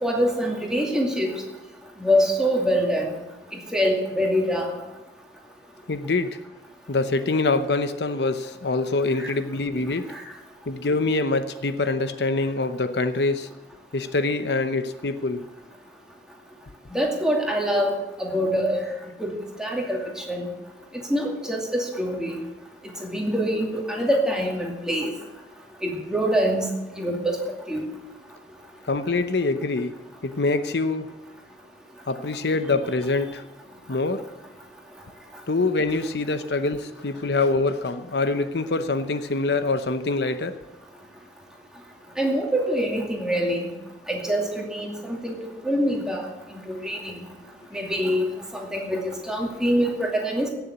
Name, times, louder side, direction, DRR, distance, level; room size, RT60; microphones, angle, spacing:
voice 1, 0.0-1.3 2.0-3.1 3.7-4.7 9.2-9.3 10.1-10.2 16.9-17.9 18.2-18.8 19.2-20.0 20.3-20.5 21.1-22.4 23.0-25.1 25.8-26.7 27.0-27.4 27.7-27.8 42.2-43.7 44.1-45.4 45.6-46.2 46.7-47.0 47.7-48.3 48.5-50.5, equal, 5° right, -1 dB, 2.4 m, -24 dB
voice 2, 5.9-6.4 6.9-10.1 10.7-13.5 13.9-15.4 28.9-29.9 30.2-31.1 32.1-33.4 33.9-34.2 35.5-40.6, left 3 dB, 70° left, 10 dB, 0.8 m, -25 dB
16.5 x 7.1 x 8.0 m, 1.1 s
head